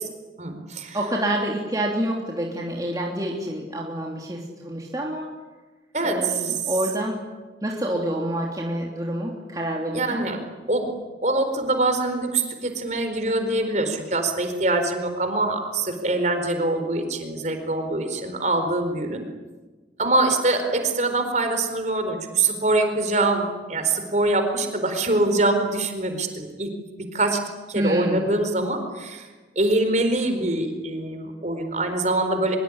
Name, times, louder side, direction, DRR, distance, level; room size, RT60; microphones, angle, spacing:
voice 1, 0.4-1.0 5.9-6.6 9.9-10.4 10.7-10.9 11.2-19.2 20.0-26.7 27.1-27.4 27.7-29.3 29.6-32.6, right 2 dB, 40° right, 6 dB, 4.5 m, -24 dB
voice 2, 0.9-5.3 6.0-7.2 7.6-10.2 27.7-28.2, right 1 dB, 20° right, -2 dB, 3.1 m, -27 dB
24.5 x 23.0 x 9.9 m, 1.3 s
head